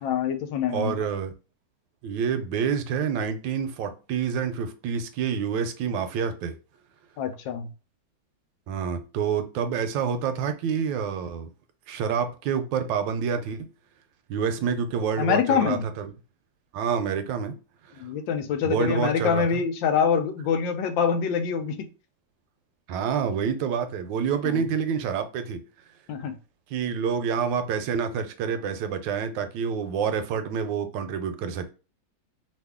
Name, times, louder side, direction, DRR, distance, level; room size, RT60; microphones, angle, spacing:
voice 1, 0.0-1.0 7.2-7.7 15.2-15.9 18.0-21.9 24.4-24.6 26.1-26.3, left 7 dB, 85° left, 1.3 m, -25 dB
voice 2, 0.7-1.3 2.0-6.6 8.7-11.5 11.9-13.7 14.3-16.1 16.7-17.5 17.8-18.1 18.6-19.6 22.9-25.6 26.7-31.7, right 7 dB, 80° right, 1.3 m, -28 dB
3.0 x 2.5 x 3.4 m
omnidirectional pair, 2.0 m